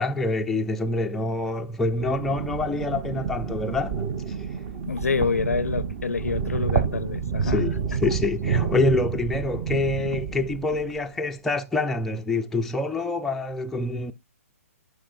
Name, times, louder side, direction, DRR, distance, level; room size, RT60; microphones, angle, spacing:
voice 1, 0.0-4.1 7.4-14.1, left 2 dB, 5° left, 0.3 m, -26 dB
sound 1, 1.8-11.1, right 6 dB, 35° right, 0.9 m, -29 dB
voice 2, 4.9-7.7, left 5 dB, 75° left, 0.4 m, -27 dB
11.0 x 4.8 x 2.6 m
figure-of-eight pair, 125°, 8 cm